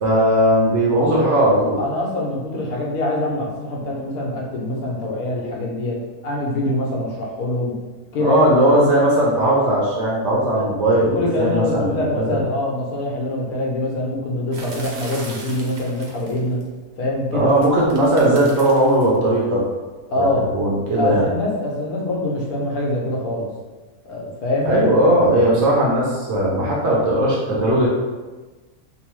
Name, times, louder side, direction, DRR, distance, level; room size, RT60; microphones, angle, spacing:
voice 1, 0.0-1.8 8.2-12.4 17.3-19.6 20.2-21.2 24.6-27.9, right 1 dB, 60° right, -5 dB, 0.7 m, -18 dB
voice 2, 1.8-7.7 8.1-8.8 10.6-10.7 11.1-16.6 17.0-17.5 20.1-20.4 20.9-23.5 24.0-24.7, left 1 dB, 80° left, -2 dB, 1.1 m, -24 dB
sound 1, 14.5-16.6 17.5-19.2, right 2 dB, 75° right, 1.1 m, -38 dB
3.0 x 2.0 x 3.0 m, 1.3 s
omnidirectional pair, 1.6 m